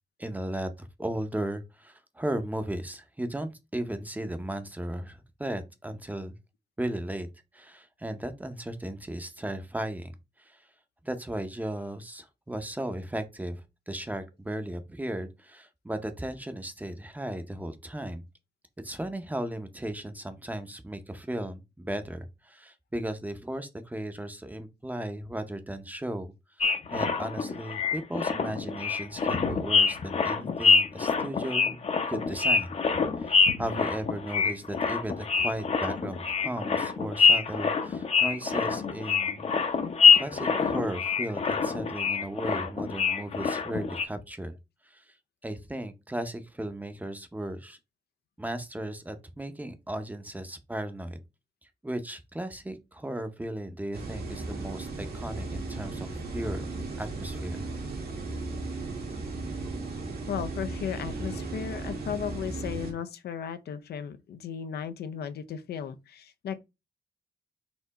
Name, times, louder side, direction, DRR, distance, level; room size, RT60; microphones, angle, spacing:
voice 1, 0.2-6.4 6.8-7.3 7.5-10.6 11.0-18.2 18.8-31.8 32.1-32.7 33.2-39.4 40.1-44.6 44.8-45.0 45.4-47.8 48.4-51.2 51.8-56.7 57.0-57.6, right 1 dB, 10° right, 0.6 m, -36 dB
sound 1, 26.6-44.1, left 5 dB, 40° left, 0.7 m, -25 dB
sound 2, 53.9-62.9, right 3 dB, 75° right, 1.7 m, -36 dB
voice 2, 60.3-66.6, left 8 dB, 80° left, 0.5 m, -35 dB
4.4 x 2.7 x 4.0 m
wide cardioid pair, 120°, 16 cm